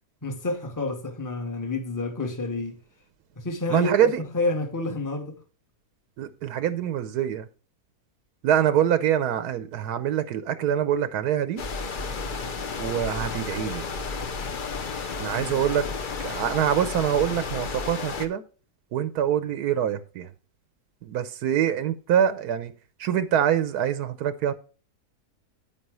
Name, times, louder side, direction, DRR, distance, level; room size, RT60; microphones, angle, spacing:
voice 1, 0.2-2.8 3.4-5.4 15.3-15.9, left 2 dB, 15° left, 1.0 m, -30 dB
voice 2, 3.7-4.2 6.2-7.5 8.4-11.6 12.8-13.8 15.2-15.9 16.2-18.4 18.9-20.3 21.0-22.7 23.0-24.5, right 10 dB, 85° right, 1.2 m, -25 dB
sound 1, 11.6-18.3, left 4 dB, 45° left, 0.7 m, -32 dB
9.0 x 8.8 x 3.1 m
omnidirectional pair, 1.6 m